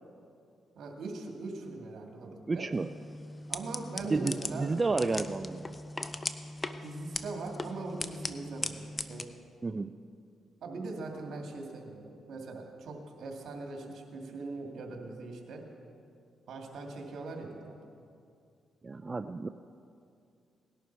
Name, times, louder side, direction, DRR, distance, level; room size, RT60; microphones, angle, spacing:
voice 1, 0.8-2.7 3.5-4.7 6.8-9.3 10.6-15.6 16.5-17.7, right 3 dB, 70° right, 1 dB, 2.3 m, -41 dB
voice 2, 2.5-2.9 4.1-5.7 9.6-9.9 18.8-19.5, right 3 dB, 30° right, 9 dB, 0.4 m, -31 dB
sound 1, 2.7-9.2, left 2 dB, 30° left, 0.8 m, -39 dB
18.5 x 11.5 x 4.6 m, 2.4 s
cardioid pair, 75°, 0 cm